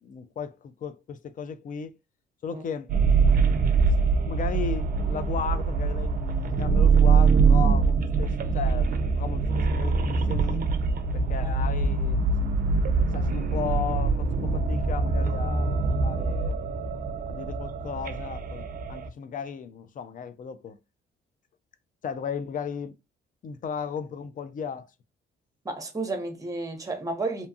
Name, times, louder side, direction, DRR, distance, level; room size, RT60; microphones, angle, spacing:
voice 1, 0.0-1.9 2.4-2.9 4.2-10.6 11.1-12.6 13.1-16.6 17.3-20.8 22.0-23.0 23.4-24.9, left 7 dB, 40° left, 0.4 m, -35 dB
sound 1, 2.9-19.1, right 4 dB, 45° right, 0.4 m, -23 dB
voice 2, 25.6-27.5, right 2 dB, 15° right, 0.8 m, -32 dB
2.7 x 2.2 x 2.6 m
cardioid pair, 90°, 20 cm